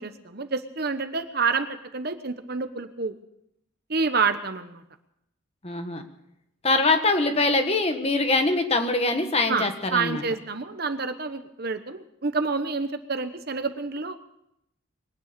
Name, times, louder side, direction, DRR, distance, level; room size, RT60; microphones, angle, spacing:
voice 1, 0.0-1.7 1.9-3.1 3.9-4.8 9.5-14.2, right 4 dB, 50° right, 8 dB, 1.1 m, -28 dB
voice 2, 5.6-6.0 6.6-10.2, left 3 dB, 30° left, 6 dB, 1.4 m, -23 dB
22.0 x 9.6 x 6.8 m, 0.81 s
head